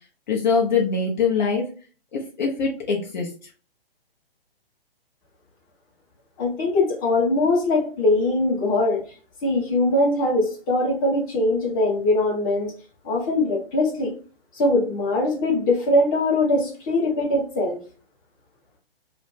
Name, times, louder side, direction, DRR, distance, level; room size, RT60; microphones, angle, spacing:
voice 1, 0.3-1.7 2.1-3.3, left 5 dB, 50° left, -1 dB, 0.7 m, -23 dB
voice 2, 6.4-9.0 9.4-12.7 13.0-14.1 14.5-17.8, left 2 dB, 20° left, -3 dB, 0.9 m, -21 dB
2.4 x 2.0 x 3.1 m, 0.37 s
figure-of-eight pair, 135°, 30 cm